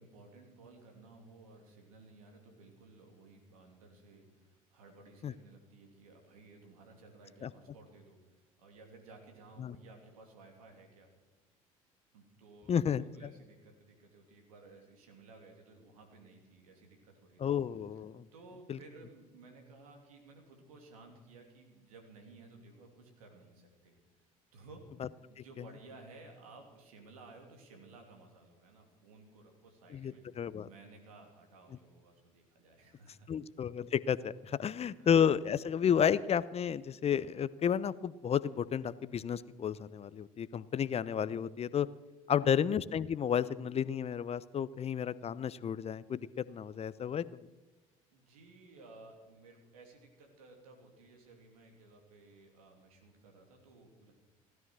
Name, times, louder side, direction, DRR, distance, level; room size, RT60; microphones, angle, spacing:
voice 1, 0.0-11.1 12.1-17.4 18.3-23.9 24.5-24.8 25.3-30.2 30.6-33.3 34.9-35.1 42.4-42.7 48.1-54.1, right 3 dB, 80° right, 3 dB, 2.8 m, -56 dB
voice 2, 12.7-13.0 17.4-18.2 18.7-18.8 29.9-30.7 33.3-41.9 42.3-47.2, left 8 dB, 35° left, 18 dB, 0.7 m, -31 dB
16.0 x 12.5 x 6.3 m, 1.1 s
hypercardioid pair, 60°, 18 cm